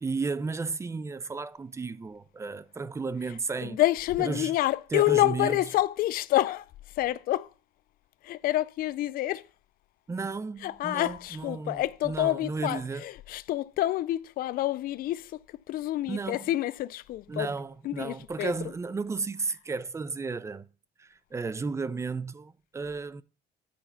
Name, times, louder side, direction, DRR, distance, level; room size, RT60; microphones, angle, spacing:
voice 1, 0.0-3.8 4.2-4.5 4.9-5.6 10.1-13.1 16.1-16.5 17.3-20.7 21.0-23.2, right 4 dB, 15° right, 0.4 m, -33 dB
voice 2, 3.6-7.5 8.2-9.5 10.6-17.5 17.8-18.5, left 15 dB, 60° left, 0.4 m, -28 dB
10.0 x 4.3 x 5.5 m
cardioid pair, 110°, 17 cm